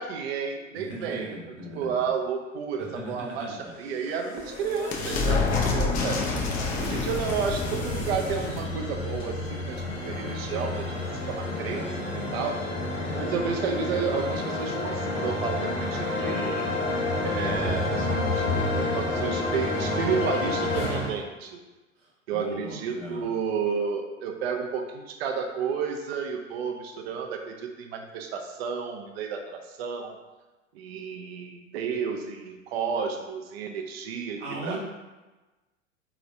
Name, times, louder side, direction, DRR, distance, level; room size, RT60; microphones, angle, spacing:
voice 1, 0.0-1.4 1.7-6.2 6.8-12.6 13.1-16.7 17.2-18.5 18.7-21.6 22.3-30.2 30.7-34.8, right 6 dB, 55° right, 3 dB, 0.6 m, -31 dB
voice 2, 0.7-2.0 2.8-3.5 22.0-23.3 34.4-34.8, right 1 dB, 75° right, -3 dB, 1.1 m, -38 dB
sound 1, 3.8-10.2, left 3 dB, 25° left, 0.4 m, -29 dB
sound 2, 6.4-21.1, left 2 dB, 60° left, 1.4 m, -30 dB
3.8 x 3.0 x 2.6 m, 1.1 s
figure-of-eight pair, 85°, 39 cm